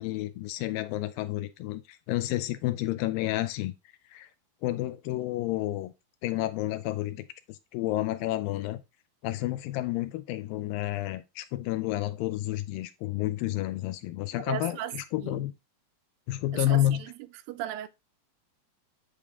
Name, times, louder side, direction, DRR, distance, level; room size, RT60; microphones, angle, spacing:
voice 1, 0.0-3.7 4.1-4.3 4.6-5.9 6.2-8.8 9.2-15.5 16.3-17.0, left 15 dB, 85° left, 2.3 m, -30 dB
voice 2, 14.5-14.9 15.2-15.4 16.5-16.8 17.5-17.9, right 11 dB, 85° right, 2.3 m, -35 dB
8.1 x 3.6 x 3.5 m
omnidirectional pair, 4.1 m